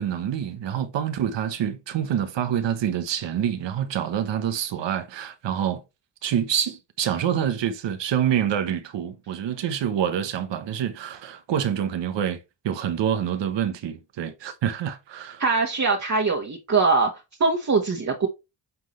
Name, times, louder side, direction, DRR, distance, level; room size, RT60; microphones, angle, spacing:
voice 1, 0.0-5.8 6.2-12.4 12.6-15.4, right 9 dB, 80° right, 1.1 m, -26 dB
voice 2, 15.4-17.1 17.4-18.3, right 4 dB, 40° right, 1.5 m, -22 dB
8.2 x 3.8 x 3.2 m
cardioid pair, 65°, 43 cm